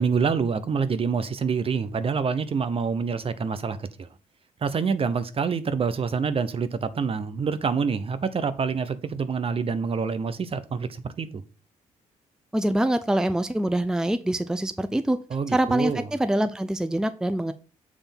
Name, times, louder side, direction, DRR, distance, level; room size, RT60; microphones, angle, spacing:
voice 1, 0.0-4.1 4.6-11.4 15.3-16.0, right 5 dB, 40° right, 0.8 m, -26 dB
voice 2, 12.5-15.2 15.5-17.5, right 1 dB, 5° right, 0.5 m, -24 dB
7.3 x 3.4 x 5.7 m
supercardioid pair, 70°, 14 cm